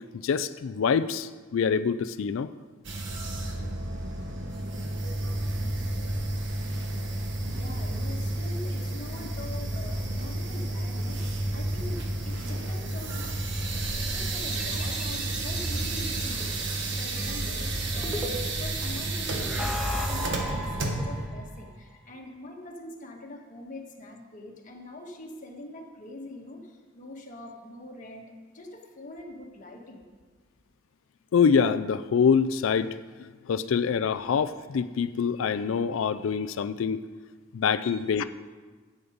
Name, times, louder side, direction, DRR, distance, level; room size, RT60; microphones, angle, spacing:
voice 1, 0.2-2.5 31.3-37.0 37.5-38.2, left 6 dB, 80° left, 12 dB, 0.4 m, -25 dB
sound 1, 2.8-21.3, right 2 dB, 65° right, 1.3 m, -31 dB
voice 2, 7.5-13.3 13.8-30.1 37.8-38.0, left 1 dB, 40° left, 0 dB, 1.6 m, -44 dB
sound 2, 14.5-16.2 17.2-18.7 19.3-21.5, left 1 dB, 5° right, 1.3 m, -35 dB
11.0 x 8.5 x 5.1 m, 1.4 s
head